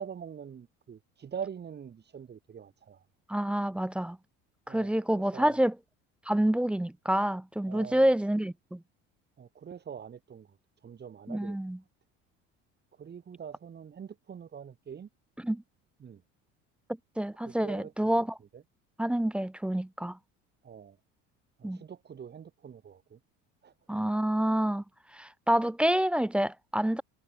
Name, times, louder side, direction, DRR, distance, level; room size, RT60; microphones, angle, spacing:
voice 1, 0.0-3.0 4.7-5.6 7.7-8.1 9.4-11.6 12.9-15.1 16.0-16.2 17.4-18.1 18.5-18.6 20.6-21.0 21.6-23.2 23.6-23.7, right 7 dB, 35° right, 3.1 m, -44 dB
voice 2, 3.3-4.2 4.7-5.7 6.3-8.8 11.3-11.8 15.4-15.6 17.2-18.3 19.0-20.2 21.6-21.8 23.9-24.8 25.1-27.0, right 1 dB, 5° right, 0.3 m, -27 dB
supercardioid pair, 105°, 30 cm